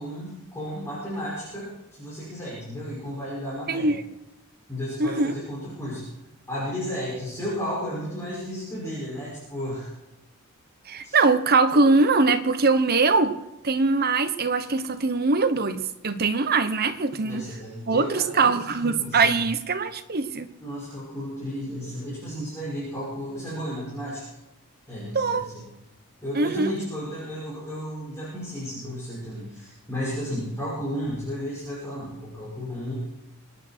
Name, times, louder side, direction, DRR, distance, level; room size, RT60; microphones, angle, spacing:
voice 1, 0.0-3.9 4.7-6.1 6.5-9.9 11.0-11.2 11.7-11.8 17.2-19.4 20.6-24.2 24.9-25.6 26.2-32.9, equal, 15° left, -9 dB, 6.1 m, -33 dB
voice 2, 3.7-4.0 5.0-5.3 10.9-13.4 13.6-17.5 17.9-20.5 25.1-25.4 26.3-26.7, right 3 dB, 45° right, 9 dB, 1.0 m, -22 dB
25.5 x 9.8 x 4.5 m, 0.96 s
head